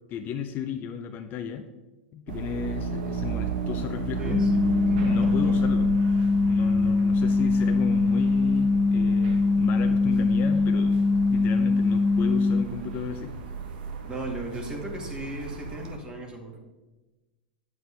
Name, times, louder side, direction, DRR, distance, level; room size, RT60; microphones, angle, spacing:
voice 1, 0.1-1.6 2.1-4.4 5.0-5.9 6.5-11.0 11.3-13.3, left 7 dB, 40° left, 7 dB, 0.6 m, -34 dB
sound 1, 2.3-16.0, right 5 dB, 65° right, 1.2 m, -35 dB
voice 2, 4.2-5.6 14.0-16.6, right 1 dB, 15° right, 1 dB, 2.0 m, -37 dB
sound 2, 4.3-12.6, left 3 dB, 5° left, 0.3 m, -22 dB
9.4 x 7.9 x 3.4 m, 1.1 s
hypercardioid pair, 110°, 5 cm